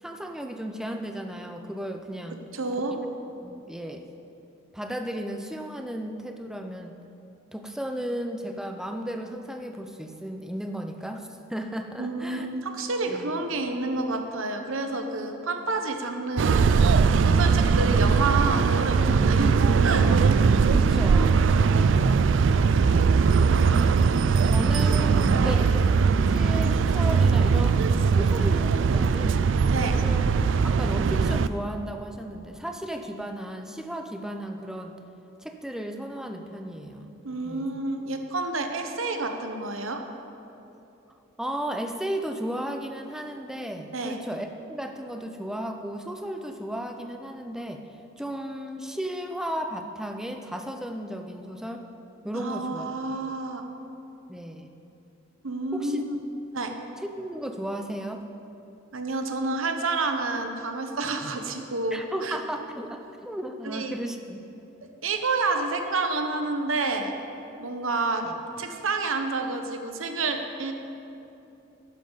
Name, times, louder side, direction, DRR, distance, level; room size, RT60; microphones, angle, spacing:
voice 1, 0.0-2.4 3.0-3.1 3.4-4.0 4.7-6.9 7.5-12.5 13.1-13.4 20.4-22.5 23.7-23.9 24.4-25.7 26.2-29.4 30.0-30.2 30.6-35.0 35.4-37.2 37.4-37.8 41.4-47.9 48.2-51.9 52.2-53.2 54.3-54.7 55.7-56.0 57.2-58.2 61.9-64.4 68.2-68.3, equal, 5° right, 5 dB, 0.5 m, -35 dB
voice 2, 2.5-2.9 12.0-16.6 17.2-19.5 19.8-20.1 25.3-25.6 29.7-30.0 37.2-40.0 43.9-44.2 52.3-53.6 55.4-56.2 56.5-56.7 58.9-62.4 63.6-64.0 65.0-67.1 67.6-70.7, right 3 dB, 80° right, 5 dB, 1.0 m, -29 dB
sound 1, 16.4-31.5, right 5 dB, 65° right, 0.3 m, -20 dB
12.0 x 10.5 x 4.0 m, 2.9 s
head